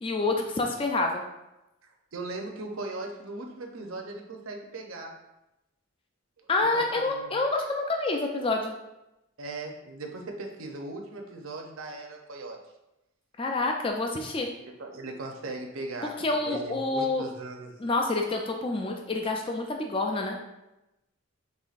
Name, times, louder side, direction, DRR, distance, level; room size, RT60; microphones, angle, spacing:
voice 1, 0.0-1.2 6.5-8.7 13.4-14.5 16.0-17.2 17.8-20.4, left 2 dB, 25° left, 2 dB, 0.3 m, -28 dB
voice 2, 2.1-5.2 6.4-6.5 6.7-7.3 9.4-12.6 14.6-16.2 16.4-17.7, right 2 dB, 70° right, 2 dB, 0.7 m, -38 dB
5.5 x 3.4 x 2.4 m, 0.93 s
head